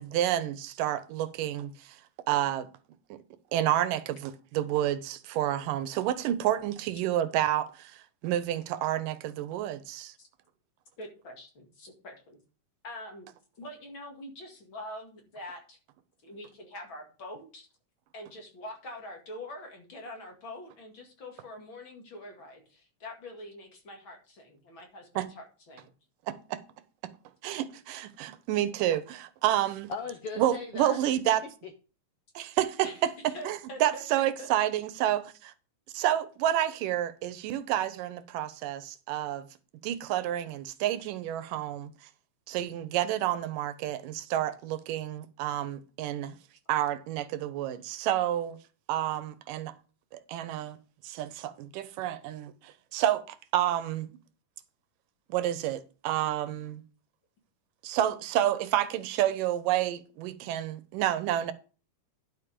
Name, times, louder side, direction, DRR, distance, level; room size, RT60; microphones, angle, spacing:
voice 1, 0.0-2.0 2.3-2.7 3.1-3.2 3.5-10.1 25.2-25.3 26.3-26.6 27.4-29.9 30.4-31.4 32.4-35.5 35.9-39.5 39.8-41.9 42.5-46.4 46.7-48.6 48.9-49.7 50.3-50.8 51.0-54.1 55.3-56.8 57.8-61.5, right 12 dB, 80° right, 2.3 m, -29 dB
voice 2, 11.0-12.4 12.8-13.3 13.6-15.8 16.2-17.7 18.1-25.9 32.8-33.0 33.3-34.7, left 1 dB, 40° left, 2.6 m, -44 dB
voice 3, 29.9-31.0, left 5 dB, 80° left, 1.3 m, -37 dB
11.0 x 5.3 x 5.2 m
omnidirectional pair, 3.9 m